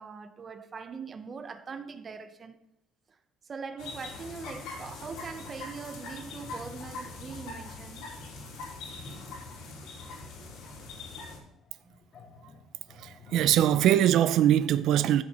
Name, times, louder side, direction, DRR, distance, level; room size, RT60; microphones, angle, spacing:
voice 1, 0.0-2.6 3.4-8.1 9.8-9.9 10.4-10.5, right 5 dB, 30° right, 0.8 m, -42 dB
sound 1, 3.8-11.4, left 3 dB, 75° left, 3.5 m, -42 dB
sound 2, 8.1-13.9, left 4 dB, 45° left, 2.7 m, -55 dB
voice 2, 13.0-15.2, right 11 dB, 65° right, 0.5 m, -22 dB
13.5 x 7.5 x 4.3 m
cardioid pair, 150°, 0 cm